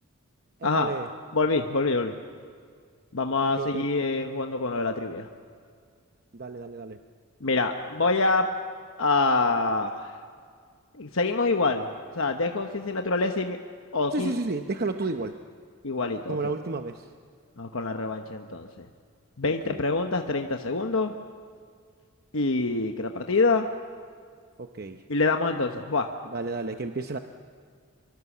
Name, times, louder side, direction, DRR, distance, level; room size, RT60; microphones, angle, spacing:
voice 1, 0.6-1.1 3.4-3.9 6.3-7.0 14.1-15.4 16.3-17.1 19.6-19.8 24.6-25.0 26.3-27.2, right 3 dB, 45° right, 6 dB, 0.8 m, -32 dB
voice 2, 1.3-2.1 3.1-5.3 7.4-8.5 9.0-10.2 10.9-11.9 12.1-13.6 13.9-14.3 15.8-16.5 17.6-18.9 19.4-21.1 22.3-23.7 25.1-26.1, left 3 dB, 70° left, 4 dB, 1.1 m, -26 dB
24.5 x 24.5 x 7.3 m, 2.1 s
head